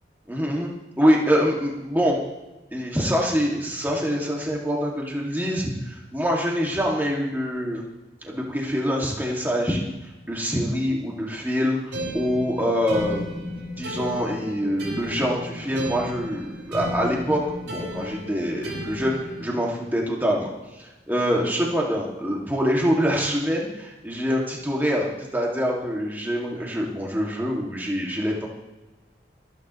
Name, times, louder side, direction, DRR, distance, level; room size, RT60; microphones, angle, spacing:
voice 1, 0.3-0.7 1.0-2.2 2.7-7.8 8.2-9.9 10.3-20.5 20.8-28.5, equal, 10° right, -2 dB, 2.2 m, -25 dB
sound 1, 11.9-19.6, equal, 85° right, 5.3 m, -34 dB
26.5 x 9.6 x 3.2 m, 1.1 s
head